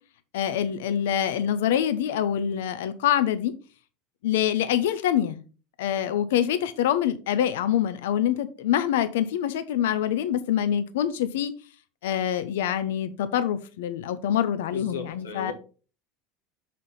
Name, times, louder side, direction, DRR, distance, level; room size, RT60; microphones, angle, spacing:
voice 1, 0.3-3.5 4.2-5.4 5.8-11.5 12.0-15.5, left 10 dB, 70° left, 12 dB, 0.7 m, -25 dB
voice 2, 14.7-15.5, left 5 dB, 85° left, 1 dB, 1.8 m, -36 dB
6.4 x 4.2 x 5.6 m, 0.36 s
hypercardioid pair, 80°, 0 cm